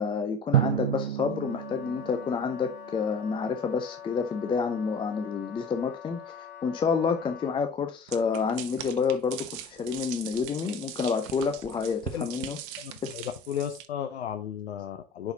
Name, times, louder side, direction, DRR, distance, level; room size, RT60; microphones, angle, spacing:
voice 1, 0.0-12.6 13.0-13.1, left 5 dB, 15° left, 0.5 m, -29 dB
Drum, 0.5-3.2, right 12 dB, 85° right, 0.6 m, -30 dB
Wind instrument woodwind instrument, 1.2-7.7, left 9 dB, 40° left, 2.6 m, -44 dB
sound 1, 8.1-13.9, right 11 dB, 45° right, 1.0 m, -41 dB
voice 2, 12.8-15.3, left 9 dB, 75° left, 0.8 m, -34 dB
10.5 x 4.5 x 2.8 m
hypercardioid pair, 100°, 33 cm